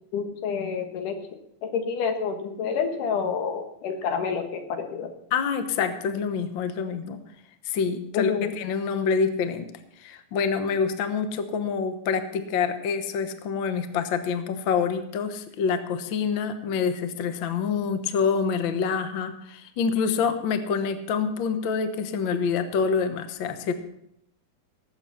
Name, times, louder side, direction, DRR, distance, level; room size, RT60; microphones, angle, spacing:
voice 1, 0.1-1.2 1.6-5.1 8.1-8.5, left 6 dB, 85° left, 5 dB, 3.1 m, -28 dB
voice 2, 5.3-7.2 7.7-9.7 10.0-23.7, left 6 dB, 60° left, 9 dB, 1.3 m, -26 dB
18.5 x 8.0 x 5.7 m, 0.75 s
omnidirectional pair, 3.6 m